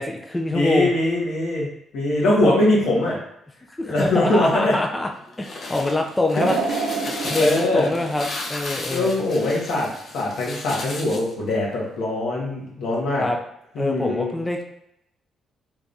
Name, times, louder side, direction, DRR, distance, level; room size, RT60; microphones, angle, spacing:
voice 1, 0.0-0.9 2.4-2.5 3.8-5.1 5.4-6.6 7.2-9.1 13.2-13.4 13.8-14.6, left 2 dB, 15° left, 2 dB, 0.4 m, -24 dB
voice 2, 0.5-1.7 1.9-3.2 3.8-4.7 6.3-6.4 7.2-7.9 8.9-13.2 13.7-14.3, left 1 dB, 85° left, -4 dB, 1.5 m, -22 dB
sound 1, 5.2-11.3, left 2 dB, 50° left, 0.8 m, -34 dB
sound 2, 6.4-9.5 10.0-10.1 11.1-11.2, right 4 dB, 85° right, 0.5 m, -29 dB
3.4 x 3.4 x 2.7 m, 0.80 s
cardioid pair, 90°, 0 cm